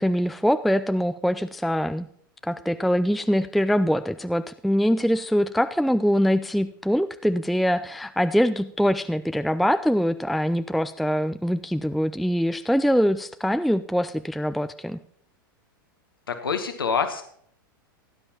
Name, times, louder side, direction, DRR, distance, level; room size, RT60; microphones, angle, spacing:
voice 1, 0.0-2.1 2.4-15.0, equal, ahead, 11 dB, 0.3 m, -23 dB
voice 2, 16.3-17.2, left 6 dB, 85° left, 7 dB, 1.1 m, -26 dB
17.5 x 9.7 x 2.9 m, 0.64 s
hypercardioid pair, 95°, 12 cm